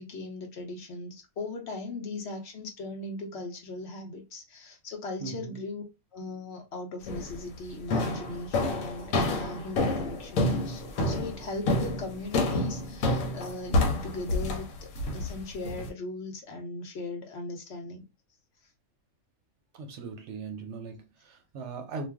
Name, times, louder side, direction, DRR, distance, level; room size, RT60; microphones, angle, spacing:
voice 1, 0.0-5.8 6.1-18.0, left 2 dB, 60° left, 0.9 m, -38 dB
voice 2, 5.2-5.6 19.7-22.1, right 4 dB, 70° right, 0.8 m, -39 dB
sound 1, 7.1-7.4 7.9-15.9, left 2 dB, 85° left, 1.1 m, -28 dB
2.5 x 2.2 x 3.3 m
omnidirectional pair, 1.4 m